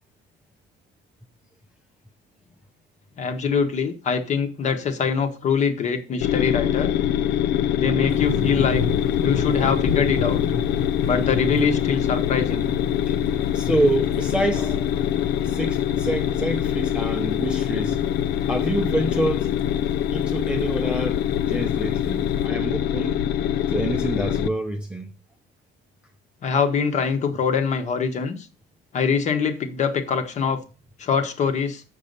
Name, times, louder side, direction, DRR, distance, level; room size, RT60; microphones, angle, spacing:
voice 1, 3.2-6.9 7.7-8.8 9.2-10.4 11.0-12.7 26.4-28.5 28.9-30.6 31.0-31.8, left 6 dB, 40° left, 1.2 m, -23 dB
sound 1, 6.2-24.5, left 10 dB, 65° left, 0.5 m, -24 dB
sound 2, 8.1-22.5, left 5 dB, 80° left, 1.5 m, -33 dB
voice 2, 13.5-15.0 15.4-18.0 18.5-19.5 20.1-23.2 23.7-25.1, right 1 dB, 5° right, 0.6 m, -27 dB
7.2 x 5.4 x 6.6 m
cardioid pair, 165°, 19 cm